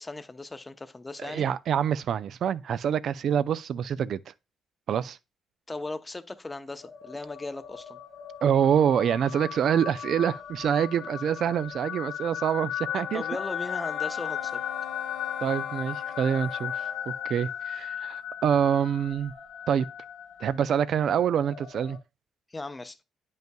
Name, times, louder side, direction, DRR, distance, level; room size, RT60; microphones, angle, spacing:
voice 1, 0.0-1.4 5.7-8.0 13.1-14.6 22.5-23.0, left 2 dB, 20° left, 0.6 m, -37 dB
voice 2, 1.2-4.2 4.9-5.2 8.4-13.2 15.4-16.7 17.1-19.3 19.7-19.9 20.4-22.0, right 8 dB, 65° right, 0.3 m, -26 dB
sound 1, 6.8-22.0, left 9 dB, 65° left, 1.9 m, -37 dB
Wind instrument woodwind instrument, 12.8-17.4, left 8 dB, 85° left, 0.8 m, -41 dB
9.1 x 5.4 x 2.3 m
cardioid pair, 90°, 0 cm